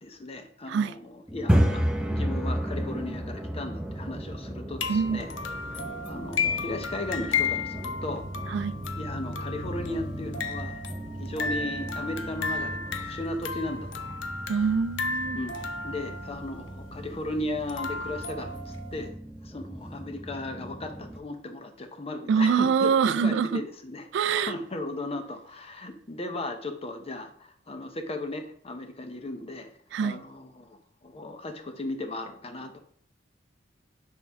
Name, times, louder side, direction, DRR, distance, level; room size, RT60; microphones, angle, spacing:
voice 1, 0.0-5.3 6.1-8.3 9.0-10.8 11.2-14.2 15.3-19.1 19.4-29.7 30.0-32.8, left 2 dB, 35° left, 0.8 m, -36 dB
sound 1, 1.3-21.2, equal, 5° right, 0.6 m, -34 dB
sound 2, 4.8-19.1, left 4 dB, 85° left, 0.6 m, -34 dB
voice 2, 4.9-5.2 8.5-8.7 14.5-15.4 22.3-23.6 24.1-24.5 29.9-30.2, right 6 dB, 65° right, 0.3 m, -24 dB
6.1 x 4.5 x 3.5 m
head